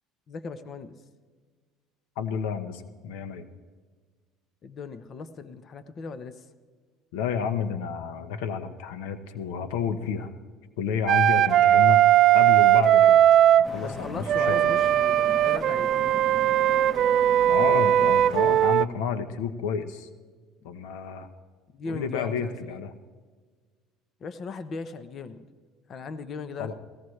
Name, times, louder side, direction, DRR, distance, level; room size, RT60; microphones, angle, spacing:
voice 1, 0.3-0.9 4.6-6.4 13.8-16.3 20.6-20.7 21.7-22.8 24.2-25.4 25.9-26.7, left 4 dB, 40° left, 11 dB, 0.9 m, -38 dB
voice 2, 2.2-3.4 7.1-10.3 10.8-12.0 12.3-13.2 13.6-14.9 17.5-20.1 20.6-21.3 21.9-22.9 26.6-26.7, left 6 dB, 85° left, 10 dB, 1.0 m, -30 dB
Wind instrument woodwind instrument, 11.1-13.7 14.3-18.9, right 12 dB, 50° right, 0.4 m, -19 dB
sound 1, 13.6-18.7, right 2 dB, ahead, 1.3 m, -40 dB
19.0 x 17.0 x 3.3 m, 1.5 s
cardioid pair, 115°, 0 cm